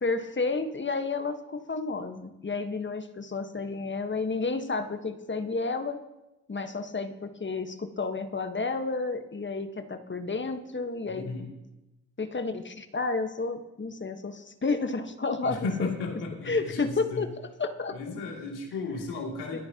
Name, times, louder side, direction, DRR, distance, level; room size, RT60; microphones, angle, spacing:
voice 1, 0.0-6.0 6.5-11.3 12.2-15.9 16.5-17.3 17.6-17.9 19.5-19.6, left 3 dB, 25° left, 8 dB, 1.4 m, -31 dB
voice 2, 11.1-11.5 15.4-17.2 17.9-19.6, left 3 dB, 75° left, -2 dB, 2.9 m, -34 dB
23.5 x 8.5 x 3.0 m, 0.98 s
hypercardioid pair, 45°, 41 cm